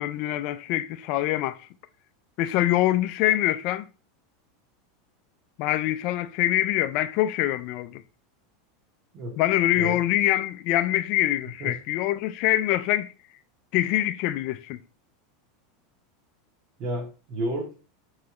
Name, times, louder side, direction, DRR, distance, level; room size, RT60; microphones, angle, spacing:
voice 1, 0.0-1.6 2.4-3.9 5.6-8.0 9.4-13.1 13.7-14.8, left 14 dB, 50° left, 0.3 m, -24 dB
voice 2, 16.8-17.7, right 1 dB, 40° right, 1.0 m, -31 dB
4.7 x 3.1 x 2.9 m
supercardioid pair, 150°, 0 cm